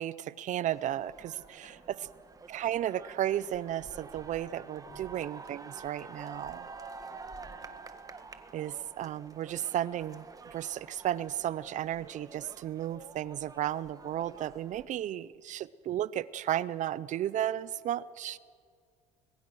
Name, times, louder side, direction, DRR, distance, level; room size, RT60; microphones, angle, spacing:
voice 1, 0.0-1.7 2.5-6.7 8.5-10.2 10.5-18.4, right 12 dB, 50° right, 18 dB, 0.5 m, -34 dB
sound 1, 0.6-14.9, right 4 dB, 20° right, 1.5 m, -49 dB
voice 2, 1.6-2.1 4.8-5.0 7.0-7.7, left 3 dB, 45° left, 2 dB, 7.0 m, -58 dB
24.5 x 21.0 x 6.2 m, 2.1 s
cardioid pair, 110°, 16 cm